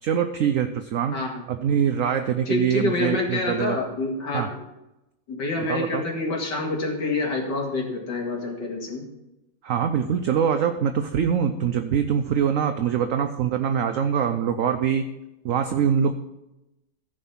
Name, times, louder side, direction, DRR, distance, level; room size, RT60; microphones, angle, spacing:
voice 1, 0.0-1.2 1.5-3.8 4.3-4.5 5.7-6.0 9.6-15.1 15.4-16.2, right 8 dB, 65° right, 7 dB, 0.8 m, -23 dB
voice 2, 1.1-1.4 2.5-4.7 5.3-9.0, left 3 dB, 70° left, 0 dB, 2.6 m, -27 dB
15.0 x 5.2 x 5.7 m, 0.94 s
omnidirectional pair, 1.9 m